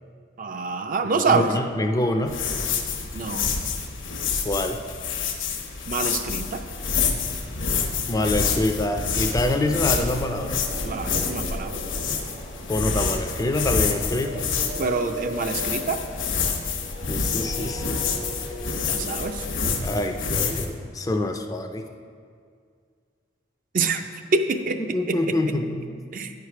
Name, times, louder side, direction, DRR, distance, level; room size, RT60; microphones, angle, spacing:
voice 1, 0.4-1.5 3.1-3.5 5.9-6.6 10.8-11.8 14.8-16.0 18.9-19.4 23.7-24.0 24.3-24.8 25.1-25.6 26.1-26.3, right 4 dB, 45° right, 7 dB, 0.4 m, -26 dB
voice 2, 1.1-2.4 4.4-4.8 8.1-10.6 12.1-12.2 12.7-14.4 17.1-18.0 19.2-19.3 19.6-21.8 24.8-26.0, left 1 dB, 20° left, 5 dB, 0.4 m, -26 dB
sound 1, 1.3-3.2 6.2-6.3 6.5-20.2, equal, 90° right, 1.6 m, -40 dB
sound 2, 2.3-20.7, left 5 dB, 75° left, 0.9 m, -28 dB
8.8 x 4.8 x 5.8 m, 2.1 s
head